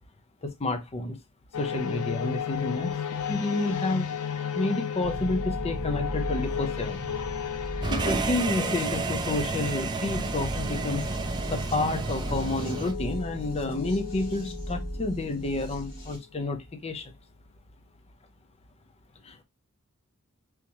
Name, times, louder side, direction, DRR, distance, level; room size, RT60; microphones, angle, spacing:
voice 1, 0.4-1.2 1.6-2.9 3.2-4.1 4.5-7.0 7.9-11.0 11.5-17.1 19.2-19.4, left 2 dB, 30° left, 0.6 m, -30 dB
sound 1, 1.5-15.9, left 8 dB, 80° left, 0.5 m, -35 dB
sound 2, 5.0-16.2, right 1 dB, 45° left, 2.3 m, -37 dB
sound 3, 7.8-12.9, right 4 dB, 20° right, 0.3 m, -31 dB
3.5 x 2.7 x 2.9 m
head